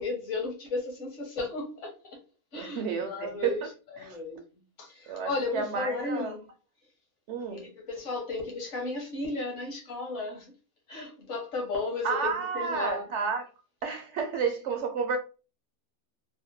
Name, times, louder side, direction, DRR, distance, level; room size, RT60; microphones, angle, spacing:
voice 1, 0.0-2.2 2.5-3.6 4.0-4.4 4.8-6.4 7.5-10.5 10.9-13.1, left 3 dB, 60° left, 1.4 m, -34 dB
voice 2, 2.5-3.7 4.0-4.2 5.1-6.4 7.3-7.7 12.0-13.5 13.8-15.2, right 5 dB, 65° right, 0.8 m, -31 dB
3.4 x 2.1 x 2.6 m
omnidirectional pair, 1.5 m